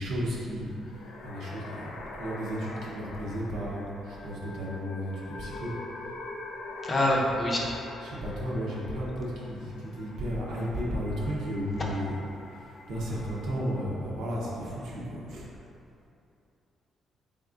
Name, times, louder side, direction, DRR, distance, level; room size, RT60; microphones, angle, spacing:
voice 1, 0.0-5.7 6.9-7.2 8.0-12.1 12.5-15.5, equal, 85° right, -5 dB, 0.7 m, -34 dB
sound 1, 0.6-14.0, left 2 dB, 80° left, 0.4 m, -44 dB
voice 2, 6.8-7.7, left 1 dB, 35° left, -2 dB, 0.6 m, -25 dB
3.6 x 3.5 x 2.5 m, 2.7 s
cardioid pair, 90°, 0 cm